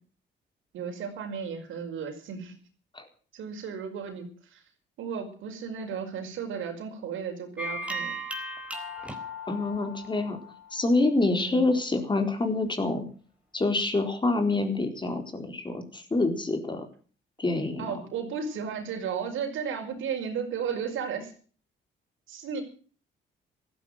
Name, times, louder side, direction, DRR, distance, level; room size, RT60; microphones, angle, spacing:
voice 1, 0.7-2.6 3.3-4.6 5.0-8.2 11.4-11.6 17.8-21.3 22.3-22.6, right 6 dB, 80° right, 5 dB, 5.3 m, -34 dB
sound 1, 7.6-11.1, equal, 5° right, 4.2 m, -37 dB
voice 2, 9.5-10.4 10.7-13.0 13.5-16.9 17.4-17.9, left 2 dB, 25° left, 5 dB, 4.3 m, -26 dB
15.0 x 14.0 x 6.5 m, 0.42 s
cardioid pair, 90°, 20 cm